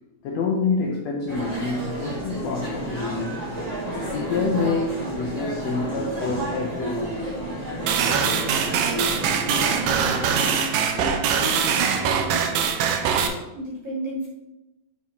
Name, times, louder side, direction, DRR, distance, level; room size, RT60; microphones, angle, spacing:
voice 1, 0.2-3.5 4.1-7.2, left 4 dB, 75° left, 0 dB, 1.6 m, -27 dB
sound 1, 1.3-10.5, right 1 dB, 25° right, 0.8 m, -31 dB
sound 2, 7.9-13.3, right 7 dB, 90° right, 2.3 m, -23 dB
voice 2, 9.4-10.7 11.3-12.7 13.6-14.3, equal, 60° right, -8 dB, 3.8 m, -34 dB
7.3 x 4.0 x 4.2 m, 0.97 s
omnidirectional pair, 3.7 m